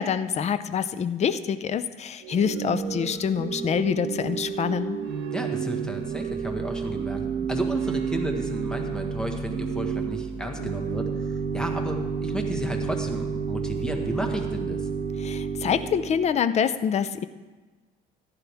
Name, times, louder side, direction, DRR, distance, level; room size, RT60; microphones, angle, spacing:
voice 1, 0.0-5.0 15.2-17.3, left 7 dB, 40° left, 13 dB, 0.6 m, -26 dB
Organ / Church bell, 2.2-16.4, right 6 dB, 80° right, 1.0 m, -30 dB
voice 2, 5.3-14.9, right 1 dB, 5° left, 3 dB, 1.6 m, -33 dB
14.5 x 10.5 x 3.6 m, 1.3 s
cardioid pair, 110°, 17 cm